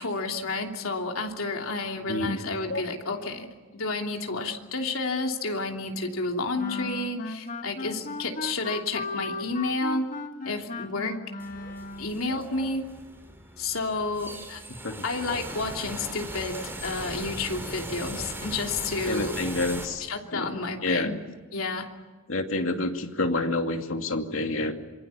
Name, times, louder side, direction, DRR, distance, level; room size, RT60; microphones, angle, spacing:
voice 1, 0.0-3.5 3.7-10.1 10.4-11.2 12.0-12.9 13.6-14.6 15.0-19.3 20.1-21.2 21.5-21.9, left 3 dB, 90° left, 2 dB, 3.0 m, -30 dB
voice 2, 2.1-2.4 2.7-2.8 14.8-15.0 19.0-20.5 20.8-21.2 22.3-24.7, left 2 dB, 75° left, 4 dB, 2.5 m, -28 dB
sound 1, 6.6-12.2, left 2 dB, 40° left, 1.9 m, -36 dB
sound 2, 11.4-19.9, right 1 dB, 10° right, 4.9 m, -39 dB
27.0 x 24.0 x 7.1 m, 1.4 s
head